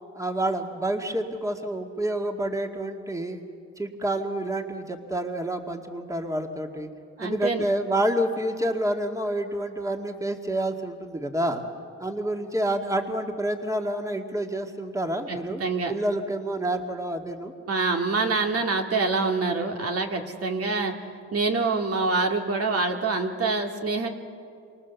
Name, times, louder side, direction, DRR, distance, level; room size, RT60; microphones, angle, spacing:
voice 1, 0.1-3.4 3.8-6.9 7.2-11.6 12.0-15.6 15.9-17.5, right 1 dB, 10° right, 3 dB, 2.1 m, -28 dB
voice 2, 7.2-7.6 15.3-15.9 17.7-20.9 21.3-24.1, right 3 dB, 50° right, 3 dB, 2.2 m, -26 dB
28.5 x 24.5 x 7.1 m, 2.5 s
cardioid pair, 90°, 30 cm